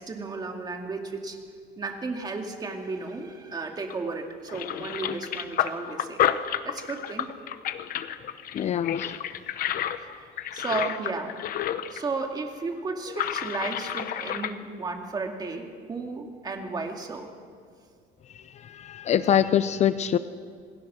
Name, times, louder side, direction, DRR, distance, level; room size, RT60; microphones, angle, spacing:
voice 1, 0.0-1.4 1.8-6.2 6.6-7.4 10.0-11.4 11.9-17.3, right 3 dB, 25° right, 3 dB, 2.4 m, -34 dB
sound 1, 3.9-4.1 4.5-12.1 12.3-12.4 13.1-14.5, left 10 dB, 55° left, 1.0 m, -30 dB
voice 2, 8.5-9.1 18.7-20.2, left 9 dB, 40° left, 13 dB, 0.6 m, -24 dB
27.5 x 20.5 x 6.3 m, 2.1 s
cardioid pair, 150°, 17 cm